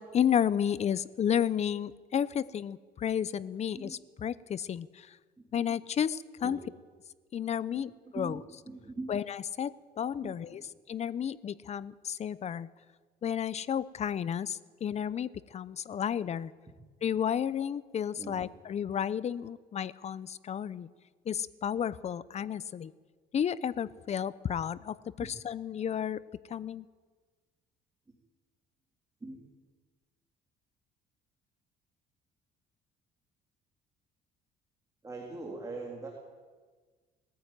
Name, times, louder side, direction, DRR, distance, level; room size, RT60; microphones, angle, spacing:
voice 1, 0.0-5.2 5.5-6.6 7.3-8.4 9.1-10.6 10.9-12.7 13.2-16.5 17.0-20.9 21.3-22.9 23.3-26.2 26.5-26.9, left 8 dB, 40° left, 18 dB, 0.8 m, -32 dB
voice 2, 8.1-9.1 10.2-10.7 18.2-18.4 25.2-25.3 29.2-29.4 35.0-36.1, right 3 dB, 20° right, -1 dB, 3.4 m, -42 dB
20.5 x 14.5 x 9.2 m, 1.4 s
cardioid pair, 110°, 17 cm